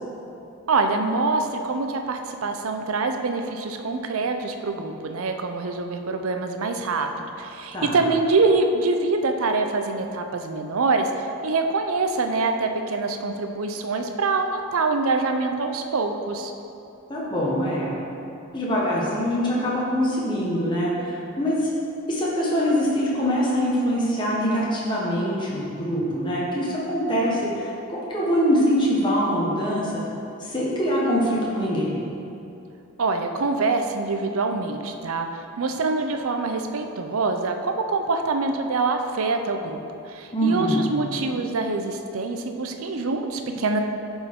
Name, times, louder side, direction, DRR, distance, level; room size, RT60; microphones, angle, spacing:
voice 1, 0.7-16.5 33.0-39.8 40.1-43.8, right 3 dB, 75° right, 5 dB, 0.5 m, -25 dB
voice 2, 17.1-18.0 18.5-21.6 22.1-30.0 30.4-32.0 40.3-40.9, equal, 20° left, -6 dB, 1.1 m, -24 dB
11.0 x 4.4 x 3.7 m, 2.8 s
head